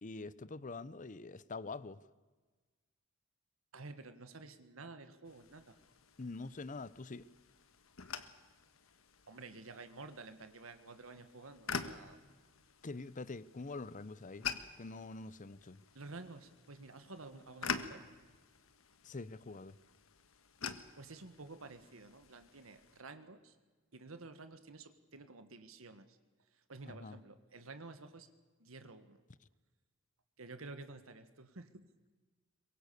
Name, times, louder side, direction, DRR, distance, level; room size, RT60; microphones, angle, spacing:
voice 1, 0.0-2.0 6.2-7.3 12.8-14.5 14.8-15.8 19.0-19.8 26.9-27.2, left 3 dB, 40° left, 0.7 m, -45 dB
voice 2, 3.7-5.8 9.3-12.2 15.9-18.1 21.0-23.6 23.9-26.2 26.5-28.3 28.6-29.2 30.4-31.9, right 3 dB, 85° right, 1.5 m, -51 dB
sound 1, 5.2-23.0, left 6 dB, 85° left, 1.4 m, -47 dB
23.5 x 22.5 x 6.8 m
head